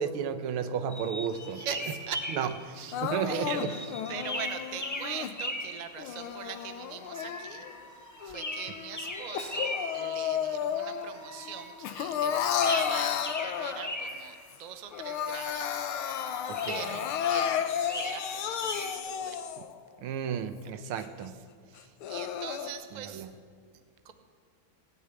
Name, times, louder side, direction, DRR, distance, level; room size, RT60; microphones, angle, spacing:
voice 1, 0.0-1.6 2.4-2.5 3.0-3.5 16.5-16.8 20.0-21.3 23.1-23.3, right 8 dB, 90° right, 10 dB, 1.7 m, -32 dB
sound 1, 0.9-3.0 3.5-6.7 7.1-12.3 12.5-14.5 14.9-19.0, left 1 dB, 20° left, 0.4 m, -40 dB
voice 2, 1.5-15.9 16.3-19.4 20.6-20.7 21.2-21.3 21.7-23.3 24.0-24.1, right 8 dB, 70° right, 8 dB, 0.4 m, -42 dB
Crying sobbing, 2.9-5.3 6.0-7.8 8.2-11.1 11.4-14.1 14.5-14.6 14.9-19.8 20.3-20.4 20.9-21.0 21.8-22.7, left 8 dB, 90° left, 1.7 m, -32 dB
18.0 x 6.8 x 9.0 m, 2.1 s
omnidirectional pair, 2.3 m